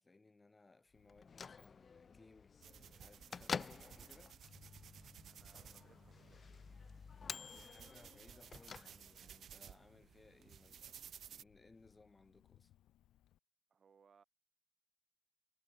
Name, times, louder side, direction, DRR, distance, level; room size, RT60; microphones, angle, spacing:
voice 1, 0.0-4.3 7.2-11.0 11.3-12.7, left 3 dB, 20° left, 7.9 m, -65 dB
Cricket, 0.9-13.4, left 13 dB, 80° left, 6.4 m, -73 dB
Bell / Microwave oven, 1.1-9.4, left 5 dB, 35° left, 0.5 m, -49 dB
sound 1, 2.6-11.4, right 9 dB, 60° right, 1.3 m, -57 dB
voice 2, 5.3-6.5 13.7-14.2, right 6 dB, 40° right, 2.9 m, -69 dB
cardioid pair, 110°, 0 cm